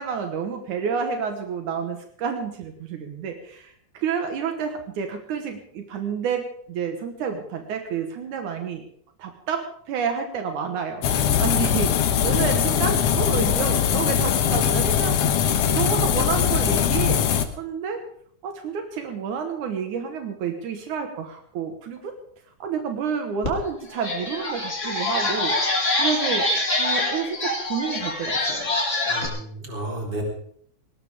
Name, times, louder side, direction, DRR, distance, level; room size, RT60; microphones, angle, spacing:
voice 1, 0.0-8.8 9.2-15.2 15.7-17.2 17.6-18.0 18.4-22.1 22.6-25.6 25.9-26.5 26.8-28.7, right 6 dB, 80° right, 5 dB, 2.8 m, -29 dB
sound 1, 11.0-17.4, left 9 dB, 65° left, 1.9 m, -21 dB
sound 2, 23.4-23.5 23.9-29.3, left 2 dB, 25° left, 3.0 m, -25 dB
voice 2, 29.1-30.2, right 1 dB, 35° right, -1 dB, 4.6 m, -32 dB
19.0 x 18.5 x 3.6 m, 0.64 s
omnidirectional pair, 3.5 m